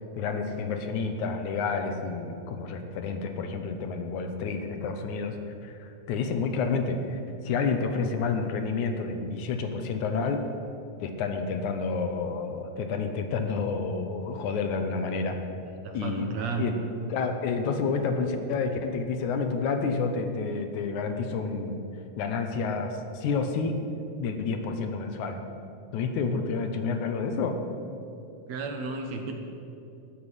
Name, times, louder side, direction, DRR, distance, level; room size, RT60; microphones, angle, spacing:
voice 1, 0.2-5.4 5.6-10.5 11.0-15.4 15.9-16.7 17.1-21.8 22.2-23.8 24.2-25.4 25.9-27.6, left 4 dB, 75° left, 6 dB, 2.3 m, -29 dB
voice 2, 15.8-16.7 28.5-29.4, right 4 dB, 65° right, 3 dB, 2.1 m, -33 dB
13.0 x 7.1 x 9.8 m, 2.7 s
omnidirectional pair, 3.6 m